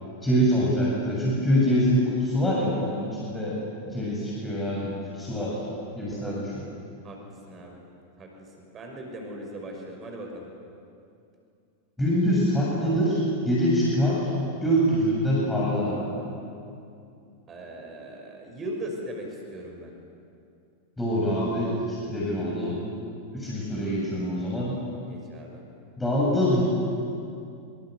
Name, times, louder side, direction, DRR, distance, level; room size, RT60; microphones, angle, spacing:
voice 1, 0.2-3.6 3.8-5.6 6.0-6.4 12.0-14.4 14.6-16.1 21.0-22.8 23.3-24.8 26.0-26.6, equal, 5° left, -6 dB, 7.5 m, -24 dB
voice 2, 6.1-6.4 7.0-7.8 8.2-10.5 17.5-19.9 25.1-25.6, right 1 dB, 25° right, 2 dB, 5.8 m, -39 dB
26.5 x 26.0 x 8.1 m, 2.5 s
figure-of-eight pair, 90°, 0 cm